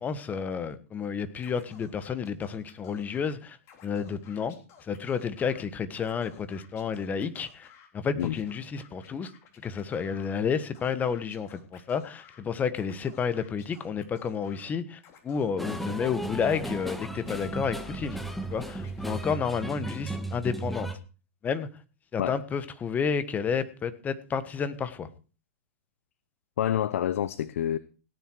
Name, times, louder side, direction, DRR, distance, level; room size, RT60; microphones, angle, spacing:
voice 1, 0.0-3.6 3.8-4.5 4.9-7.7 7.9-9.3 9.6-15.0 15.2-18.2 18.5-20.9 21.4-21.7 22.1-25.1, left 6 dB, 20° left, 1.4 m, -31 dB
Scratching (performance technique), 1.4-3.3 3.6-5.6 5.9-7.9 8.2-10.3 10.7-12.4 12.7-14.7 15.0-16.9 17.3-19.4, left 8 dB, 35° left, 3.6 m, -55 dB
sound 1, 15.6-21.0, right 2 dB, ahead, 1.5 m, -35 dB
voice 2, 26.6-27.8, left 10 dB, 65° left, 0.8 m, -27 dB
17.5 x 9.6 x 4.7 m
hypercardioid pair, 115°, 8 cm